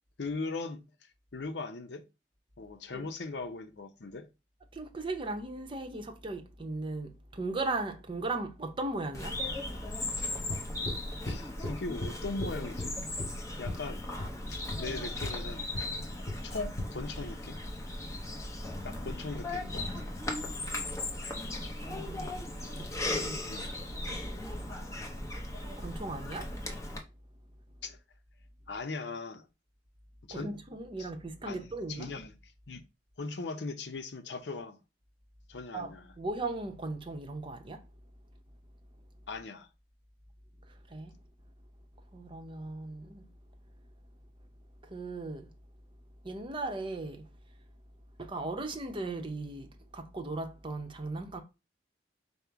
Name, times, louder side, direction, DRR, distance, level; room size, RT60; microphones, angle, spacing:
voice 1, 0.2-2.0 2.6-4.3 11.2-12.9 13.6-14.0 14.5-15.6 16.4-17.6 18.8-19.9 23.4-23.7 27.8-28.0 28.7-29.5 30.3-30.6 31.0-31.1 31.5-32.3 32.7-32.8 33.2-34.8 35.5-36.1 39.3-39.7, left 3 dB, 70° left, 0.7 m, -39 dB
voice 2, 4.7-9.4 21.5-22.4 22.7-23.5 25.8-26.5 30.3-32.1 35.7-37.9 40.7-41.1 42.1-43.3 44.8-45.5 46.2-47.3 48.2-51.4, right 2 dB, 30° right, 0.7 m, -37 dB
Bird vocalization bird call bird song, 9.1-27.0, left 1 dB, 15° left, 0.8 m, -37 dB
sound 1, 10.5-11.0 11.3-11.8 12.0-12.1 12.4-12.9 13.2-13.3 13.7-13.8 14.2-14.3 14.7-14.8 15.2-15.3 15.7-15.9 16.3-16.4 16.8-16.9, left 1 dB, 50° left, 2.3 m, -36 dB
5.3 x 2.1 x 4.6 m
head